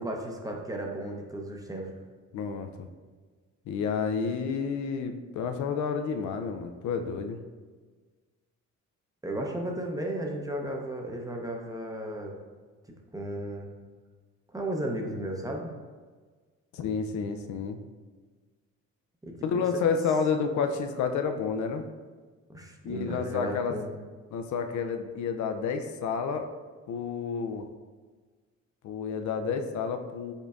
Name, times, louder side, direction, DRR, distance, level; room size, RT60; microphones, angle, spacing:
voice 1, 0.0-1.9 9.2-12.3 13.1-13.7 14.5-15.7 19.2-20.0 22.5-23.9, right 1 dB, 10° right, 1 dB, 0.6 m, -34 dB
voice 2, 2.3-2.9 3.7-7.4 16.7-17.8 19.4-21.8 22.8-23.8 24.3-26.5 26.9-27.6 28.8-30.3, left 6 dB, 75° left, 6 dB, 0.5 m, -30 dB
5.4 x 3.9 x 2.4 m, 1.4 s
cardioid pair, 90°, 30 cm